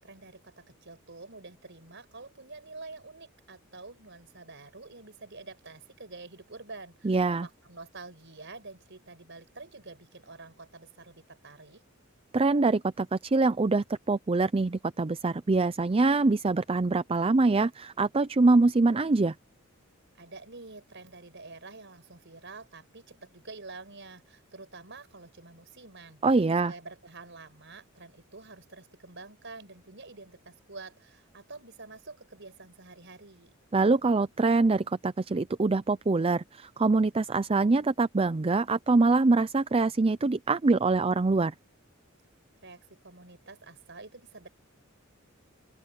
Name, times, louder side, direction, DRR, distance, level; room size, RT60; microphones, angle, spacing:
voice 1, 0.0-11.8 20.1-26.2 26.7-33.5 42.6-44.5, right 3 dB, 60° right, 5.5 m, -47 dB
voice 2, 7.0-7.5 12.3-19.3 26.2-26.7 33.7-41.5, right 3 dB, 30° right, 0.5 m, -24 dB
open air
head